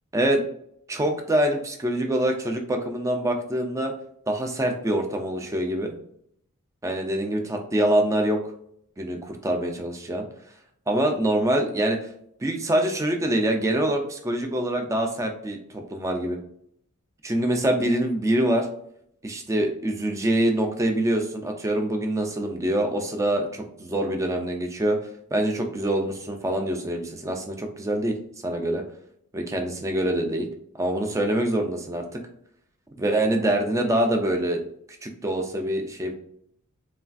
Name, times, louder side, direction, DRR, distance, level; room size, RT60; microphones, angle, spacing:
voice 1, 0.9-3.9 4.3-5.9 6.8-8.4 9.0-10.3 10.9-12.0 12.4-16.4 17.2-18.7 19.2-25.0 25.3-28.1 28.4-28.8 29.3-30.5 30.8-32.0 33.0-34.6 35.0-36.1, right 1 dB, 15° right, 3 dB, 0.3 m, -25 dB
3.2 x 2.3 x 2.4 m, 0.71 s
head